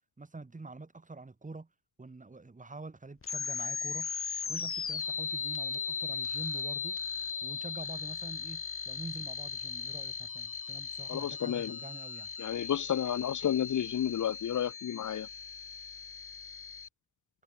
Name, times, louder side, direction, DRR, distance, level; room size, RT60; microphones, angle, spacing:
voice 1, 0.2-1.7 2.0-4.1 4.5-7.0 7.4-12.3, right 3 dB, 25° right, 3.6 m, -46 dB
sound 1, 3.2-16.9, left 6 dB, 40° left, 1.6 m, -38 dB
voice 2, 11.1-11.8 12.4-15.3, left 10 dB, 65° left, 0.7 m, -31 dB
wide cardioid pair, 165°, 33 cm